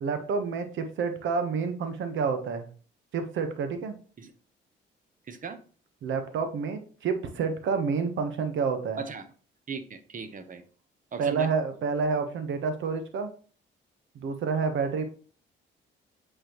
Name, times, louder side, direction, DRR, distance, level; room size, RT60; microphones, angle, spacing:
voice 1, 0.0-2.7 3.1-3.9 6.0-9.0 11.2-13.3 14.1-15.0, right 5 dB, 75° right, 7 dB, 1.1 m, -29 dB
voice 2, 5.3-5.6 9.0-9.2 9.7-10.6 11.1-11.5, right 5 dB, 40° right, 9 dB, 1.0 m, -37 dB
7.9 x 4.3 x 3.0 m, 0.41 s
cardioid pair, 90°, 20 cm